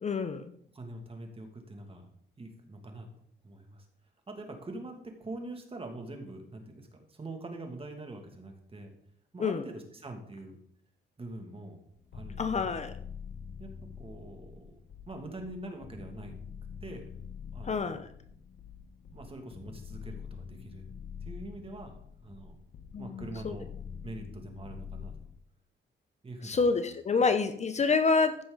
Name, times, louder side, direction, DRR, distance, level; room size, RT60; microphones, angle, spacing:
voice 1, 0.0-0.5 9.4-9.6 12.4-12.9 17.6-18.1 22.9-23.6 26.4-28.4, left 4 dB, 35° left, 10 dB, 0.7 m, -28 dB
voice 2, 0.7-2.1 2.4-3.1 3.4-3.8 4.3-8.9 9.3-10.6 11.2-11.8 12.1-12.8 13.6-13.7 14.0-14.8 15.1-16.3 16.8-17.1 17.5-18.1 19.1-20.8 21.2-21.9 22.2-22.6 23.0-23.7 24.0-25.1 26.2-26.6, right 2 dB, 30° right, 4 dB, 2.3 m, -44 dB
sound 1, 11.9-25.3, left 6 dB, 60° left, 1.3 m, -45 dB
14.5 x 5.9 x 4.0 m, 0.68 s
cardioid pair, 90°, 20 cm